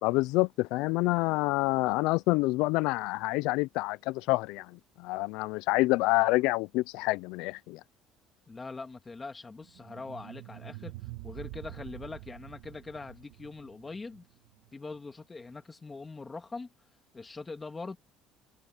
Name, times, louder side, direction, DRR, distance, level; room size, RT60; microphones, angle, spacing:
voice 1, 0.0-4.7 5.0-7.8, left 22 dB, 85° left, 0.3 m, -27 dB
voice 2, 8.5-10.9 11.2-14.3 14.7-16.7 17.1-18.0, left 3 dB, 15° left, 1.8 m, -42 dB
sound 1, 9.6-14.7, right 18 dB, 85° right, 1.2 m, -46 dB
cardioid pair, 175°, 0 cm